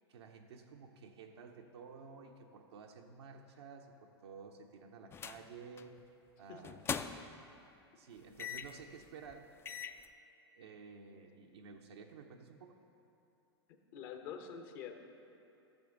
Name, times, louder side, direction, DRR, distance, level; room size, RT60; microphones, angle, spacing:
voice 1, 0.1-6.0 6.4-6.8 8.0-9.6 10.5-12.8, right 5 dB, 80° right, 1 dB, 0.7 m, -53 dB
sound 1, 5.1-5.4 5.8-6.0 6.6-7.4 8.4-8.8 9.3-9.4 9.6-10.0, left 6 dB, 20° left, 0.3 m, -41 dB
voice 2, 6.5-7.0 13.7-15.0, left 7 dB, 55° left, 5 dB, 1.0 m, -47 dB
14.0 x 6.9 x 3.8 m, 2.8 s
hypercardioid pair, 105°, 14 cm